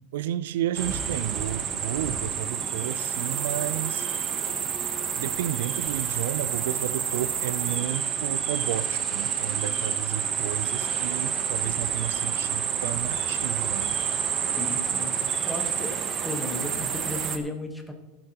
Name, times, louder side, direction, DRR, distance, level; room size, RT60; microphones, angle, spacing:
voice 1, 0.1-4.1 5.2-14.0, right 12 dB, 70° right, 0.4 m, -32 dB
sound 1, 0.7-17.4, right 7 dB, 20° right, 0.9 m, -29 dB
voice 2, 14.5-15.1 15.5-16.0 16.2-17.9, left 1 dB, ahead, 1.2 m, -34 dB
14.5 x 11.5 x 2.9 m
supercardioid pair, 175°, 0 cm